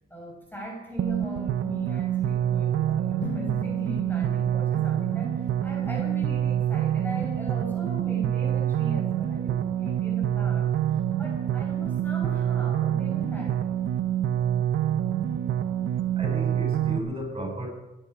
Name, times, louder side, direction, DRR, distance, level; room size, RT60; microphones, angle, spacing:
voice 1, 0.1-13.6, equal, 10° left, -1 dB, 5.9 m, -40 dB
sound 1, 1.0-17.0, right 10 dB, 75° right, 1.1 m, -26 dB
Drum, 3.2-5.9, left 6 dB, 70° left, 2.4 m, -41 dB
voice 2, 16.2-17.7, equal, 30° right, 0 dB, 7.7 m, -34 dB
23.5 x 10.5 x 5.0 m, 0.99 s
supercardioid pair, 50°, 20 cm